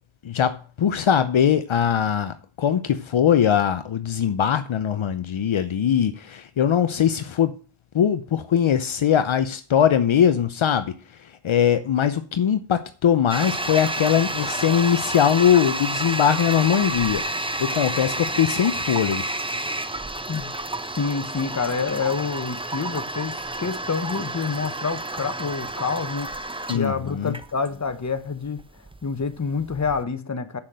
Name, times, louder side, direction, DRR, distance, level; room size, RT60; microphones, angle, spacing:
voice 1, 0.2-7.5 7.9-10.9 11.4-17.2 17.6-19.3 26.7-27.3, left 9 dB, 70° left, 0.8 m, -21 dB
Toilet flush, 13.3-30.0, right 2 dB, 10° right, 0.8 m, -30 dB
voice 2, 21.0-26.3 26.7-28.6 29.0-30.6, left 5 dB, 35° left, 1.2 m, -27 dB
7.4 x 6.5 x 7.6 m
wide cardioid pair, 65°, 49 cm